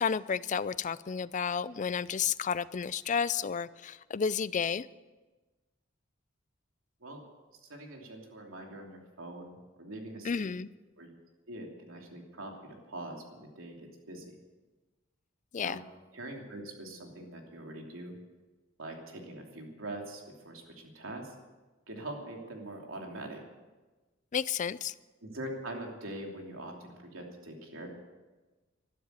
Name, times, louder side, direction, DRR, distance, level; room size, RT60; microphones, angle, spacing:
voice 1, 0.0-4.9 10.2-10.7 15.5-15.8 24.3-24.9, left 6 dB, 40° left, 18 dB, 0.4 m, -31 dB
voice 2, 7.7-10.3 11.0-11.1 11.5-14.4 15.6-15.8 16.1-18.1 18.8-21.3 21.9-23.4 25.2-27.9, right 1 dB, 85° right, 1 dB, 3.0 m, -43 dB
12.5 x 12.5 x 8.2 m, 1.2 s
head